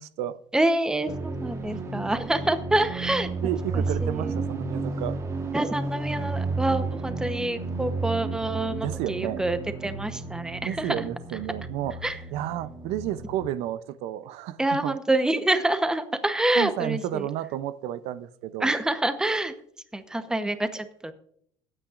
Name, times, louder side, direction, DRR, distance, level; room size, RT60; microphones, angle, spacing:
voice 1, 0.0-0.4 3.4-5.2 8.8-9.4 10.6-15.0 16.5-18.7, right 12 dB, 75° right, 0.6 m, -32 dB
voice 2, 0.5-3.3 4.0-4.3 5.5-9.6 9.8-11.0 12.0-12.2 14.6-17.2 18.6-19.5 19.9-21.1, right 1 dB, 5° right, 0.9 m, -26 dB
sound 1, 1.1-13.5, right 3 dB, 25° right, 1.4 m, -32 dB
21.0 x 8.8 x 2.5 m
cardioid pair, 130°, 11 cm